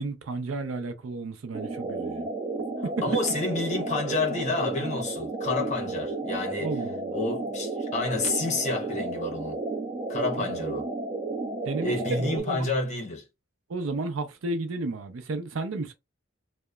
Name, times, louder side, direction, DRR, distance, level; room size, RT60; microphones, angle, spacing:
voice 1, 0.0-2.3 2.8-3.0 6.6-7.2 10.4-10.8 11.6-11.9 12.3-12.7 13.7-15.9, right 3 dB, 70° right, 0.5 m, -33 dB
sound 1, 1.5-12.4, right 3 dB, 15° right, 0.9 m, -32 dB
voice 2, 3.0-6.7 7.1-9.6 10.1-10.9 11.8-13.3, left 3 dB, 35° left, 0.7 m, -29 dB
2.8 x 2.1 x 2.2 m
head